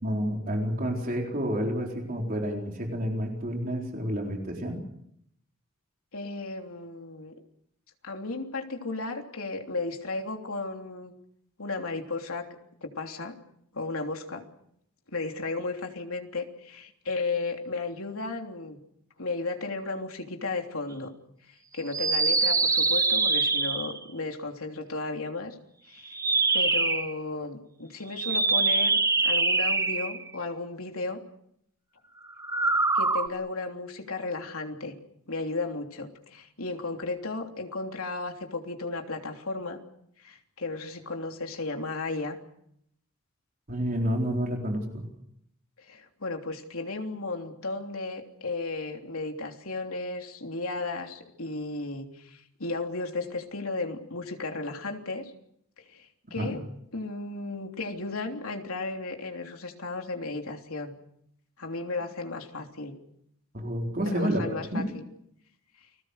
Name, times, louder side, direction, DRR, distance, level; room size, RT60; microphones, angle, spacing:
voice 1, 0.0-4.8 43.7-45.0 56.4-56.5 63.5-64.9, equal, 40° right, 1 dB, 4.3 m, -29 dB
voice 2, 6.1-7.3 8.0-11.1 11.6-12.4 12.8-13.3 13.7-14.4 15.1-18.8 19.2-21.1 21.5-25.5 25.9-26.1 26.5-31.2 32.9-35.0 35.3-39.8 40.2-42.4 45.8-55.3 55.8-56.6 56.9-60.9 61.6-62.9 64.0-65.0, left 3 dB, 75° left, 3 dB, 3.3 m, -34 dB
sound 1, 21.9-24.0 26.1-27.1 28.1-30.3 32.4-33.3, right 3 dB, 15° right, 1.0 m, -24 dB
30.0 x 21.0 x 6.6 m, 0.73 s
head